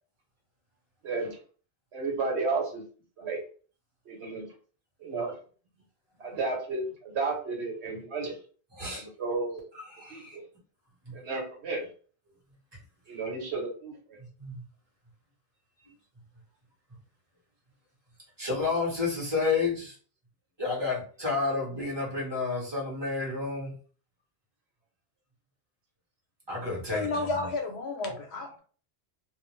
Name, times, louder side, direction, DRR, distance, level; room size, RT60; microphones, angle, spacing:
voice 1, 1.0-1.4 1.9-2.8 3.2-3.4 4.1-4.5 5.0-5.3 6.2-8.4 9.0-9.7 10.1-10.4 11.1-11.9 13.1-14.0, right 3 dB, 80° right, 0 dB, 1.2 m, -32 dB
voice 2, 8.7-9.1 9.9-10.4 11.0-11.1 14.4-14.6 18.4-20.0 20.6-23.7 26.5-27.5, left 4 dB, 25° right, -4 dB, 1.1 m, -30 dB
voice 3, 26.9-28.6, left 3 dB, 75° left, 3 dB, 1.0 m, -31 dB
2.5 x 2.1 x 3.1 m, 0.41 s
omnidirectional pair, 1.1 m